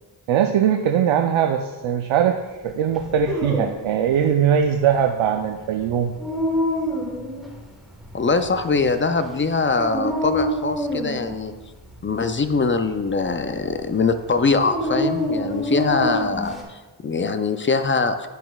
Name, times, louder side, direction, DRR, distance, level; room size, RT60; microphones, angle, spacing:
voice 1, 0.3-2.4 2.6-6.1, right 8 dB, 80° right, 5 dB, 0.6 m, -20 dB
Dog, 2.9-16.6, equal, ahead, 1.3 m, -28 dB
voice 2, 8.1-11.5 12.0-18.3, left 4 dB, 25° left, 9 dB, 0.4 m, -22 dB
10.5 x 6.1 x 2.3 m, 1.2 s
wide cardioid pair, 95°, 47 cm